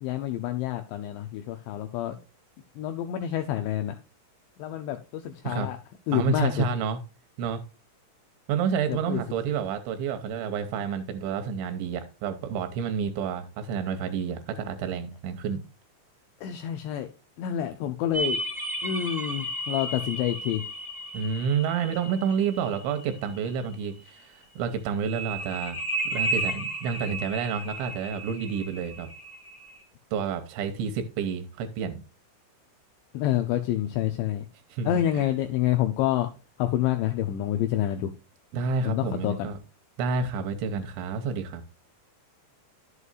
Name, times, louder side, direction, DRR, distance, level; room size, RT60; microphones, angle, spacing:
voice 1, 0.0-2.2 2.8-3.9 4.6-5.8 6.1-6.7 8.9-9.2 16.4-17.1 17.4-18.4 18.8-20.6 33.1-34.5 34.9-36.3 36.6-38.1 38.8-39.5, left 12 dB, 85° left, 6 dB, 2.5 m, -28 dB
voice 2, 6.1-7.0 7.4-7.6 8.5-15.6 21.1-25.8 26.1-29.1 30.1-32.0 34.7-35.3 38.5-39.6 40.0-41.6, right 6 dB, 80° right, 6 dB, 2.9 m, -29 dB
sound 1, 18.1-23.7 25.0-29.8, right 1 dB, 20° right, 0.5 m, -33 dB
11.0 x 8.2 x 2.4 m, 0.32 s
omnidirectional pair, 5.8 m